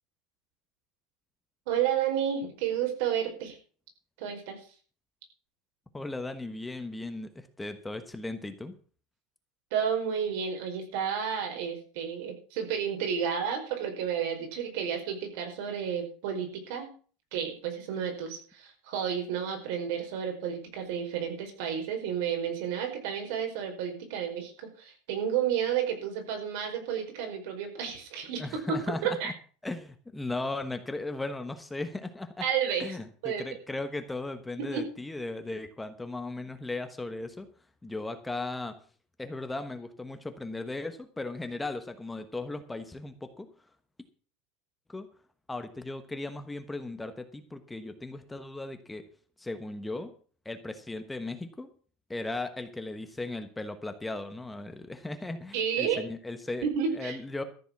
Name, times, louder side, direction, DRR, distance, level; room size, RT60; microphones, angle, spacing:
voice 1, 1.7-3.6 4.2-4.7 9.7-16.9 17.3-28.6 29.0-29.3 32.4-33.0 33.2-33.4 34.6-34.8 55.5-56.0 56.6-57.2, right 8 dB, 75° right, 4 dB, 5.0 m, -31 dB
voice 2, 5.9-8.7 28.4-29.3 29.6-32.4 32.8-37.5 37.8-38.8 39.2-43.5 44.9-45.1 45.5-49.0 49.4-50.1 50.4-51.7 52.1-56.7 56.9-57.4, left 2 dB, 5° left, 8 dB, 1.1 m, -37 dB
14.0 x 7.2 x 7.2 m, 0.42 s
cardioid pair, 155°, 0 cm